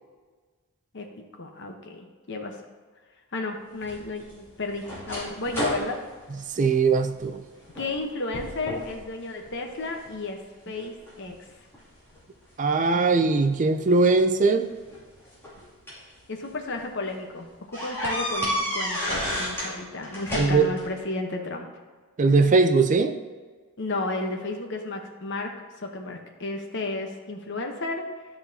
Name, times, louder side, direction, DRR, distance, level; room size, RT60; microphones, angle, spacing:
voice 1, 0.9-2.5 3.3-6.0 7.7-10.4 10.7-11.3 16.3-21.7 23.8-25.5 25.8-28.0, left 2 dB, 55° left, 3 dB, 1.0 m, -33 dB
sound 1, 3.8-7.3 7.7-8.0 8.3-9.0 9.4-10.2 10.8-12.2 13.4-13.5 14.7-16.1 16.6-16.8 17.1-17.2 17.7-19.7 20.0-20.9, equal, 10° left, 2.6 m, -32 dB
voice 2, 6.5-7.4 12.6-14.7 20.4-20.7 22.2-23.1, right 4 dB, 35° right, 8 dB, 0.4 m, -20 dB
12.5 x 5.6 x 2.8 m, 1.5 s
head